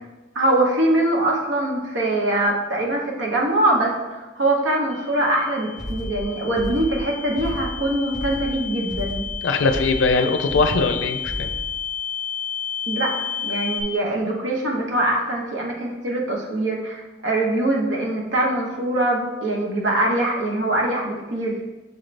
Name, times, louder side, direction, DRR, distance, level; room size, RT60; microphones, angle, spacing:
voice 1, 0.3-9.3 12.9-13.1 13.4-21.6, right 1 dB, 85° right, -1 dB, 0.9 m, -23 dB
sound 1, 4.9-13.8, left 8 dB, 20° right, 0.8 m, -32 dB
sound 2, 5.8-11.8, equal, ahead, 0.4 m, -33 dB
voice 2, 9.4-11.5, left 3 dB, 90° left, 7 dB, 0.4 m, -21 dB
6.4 x 2.5 x 3.2 m, 1.2 s
head